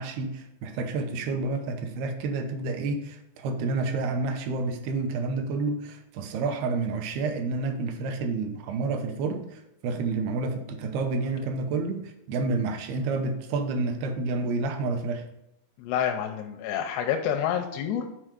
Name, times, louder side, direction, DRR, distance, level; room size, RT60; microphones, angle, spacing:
voice 1, 0.0-15.2, right 3 dB, 80° right, 5 dB, 2.7 m, -29 dB
voice 2, 15.8-18.0, left 9 dB, 90° left, 4 dB, 2.8 m, -28 dB
7.5 x 4.7 x 5.0 m, 0.85 s
omnidirectional pair, 4.7 m